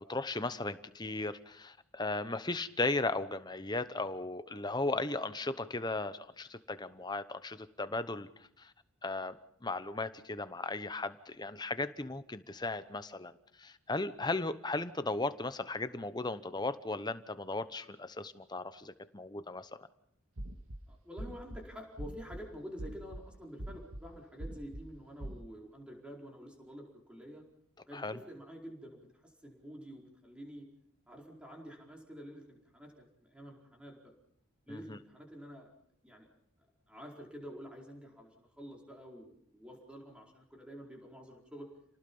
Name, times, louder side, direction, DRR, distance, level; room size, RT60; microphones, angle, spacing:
voice 1, 0.0-8.3 8.6-8.7 9.0-13.3 13.6-19.9 27.9-28.2 34.7-35.0, left 2 dB, 20° left, 12 dB, 0.9 m, -36 dB
sound 1, 20.4-20.8 21.2-21.6 22.0-22.4 22.8-23.2 23.6-24.0 24.4-24.8 25.2-25.4, right 1 dB, 75° right, 1.9 m, -42 dB
voice 2, 20.9-27.4 27.9-30.7 31.1-34.1 34.7-35.7 36.0-36.3 36.9-41.7, equal, 5° right, -1 dB, 4.7 m, -48 dB
29.5 x 19.0 x 5.6 m, 0.71 s
head